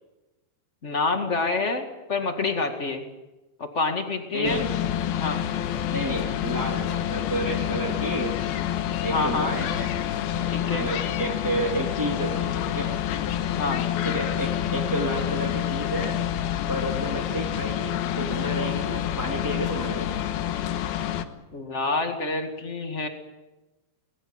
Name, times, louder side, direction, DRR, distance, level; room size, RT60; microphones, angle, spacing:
voice 1, 0.8-3.0 3.6-4.6 5.2-5.4 9.1-9.5 10.5-10.9 13.6-13.8 21.5-23.1, left 3 dB, 45° left, 5 dB, 0.9 m, -27 dB
voice 2, 4.3-4.7 5.9-8.3 9.0-9.9 10.7-12.9 14.0-16.2 16.7-20.2, right 1 dB, 5° right, -1 dB, 2.0 m, -31 dB
sound 1, 4.4-21.2, left 11 dB, 70° left, 2.9 m, -28 dB
23.5 x 21.0 x 8.9 m, 1.1 s
omnidirectional pair, 5.1 m